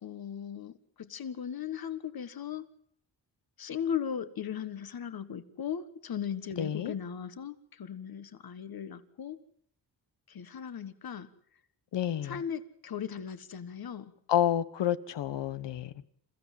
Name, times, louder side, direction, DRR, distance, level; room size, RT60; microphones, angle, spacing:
voice 1, 0.0-2.6 3.6-9.4 10.3-11.3 12.2-14.1, left 8 dB, 55° left, 12 dB, 1.5 m, -37 dB
voice 2, 6.6-6.9 11.9-12.4 14.3-16.0, left 10 dB, 85° left, 14 dB, 1.2 m, -29 dB
27.5 x 15.5 x 7.6 m, 0.67 s
wide cardioid pair, 115°, 42 cm